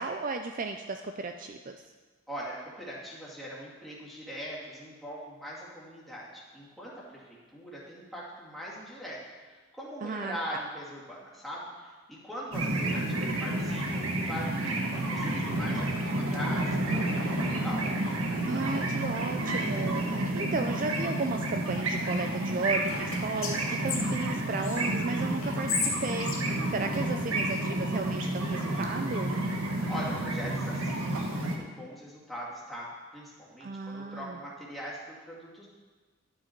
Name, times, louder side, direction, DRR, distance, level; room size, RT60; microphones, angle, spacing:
voice 1, 0.0-1.8 10.0-10.6 18.5-29.4 33.6-34.4, right 3 dB, 40° right, 6 dB, 0.4 m, -34 dB
voice 2, 2.3-9.2 9.5-17.9 29.9-35.7, equal, ahead, -7 dB, 2.4 m, -41 dB
sound 1, 12.5-31.6, right 1 dB, 85° right, 1.4 m, -30 dB
Whispering, 22.8-24.8 25.4-27.6, left 5 dB, 80° left, 2.3 m, -35 dB
12.5 x 8.2 x 4.5 m, 1.4 s
head